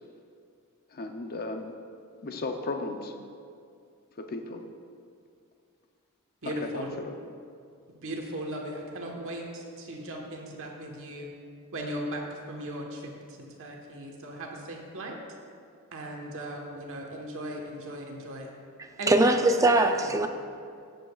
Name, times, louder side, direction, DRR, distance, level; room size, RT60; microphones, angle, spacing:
voice 1, 0.9-1.7 2.2-3.1 4.2-4.6 6.6-6.8, left 3 dB, 45° left, 5 dB, 0.6 m, -35 dB
voice 2, 6.4-6.9 8.0-11.3 11.7-15.2 15.9-18.5 19.0-19.4 20.0-20.2, right 1 dB, 65° right, 0 dB, 1.3 m, -37 dB
voice 3, 19.1-20.3, right 2 dB, 15° right, 6 dB, 0.5 m, -21 dB
16.0 x 7.6 x 2.4 m, 2.3 s
head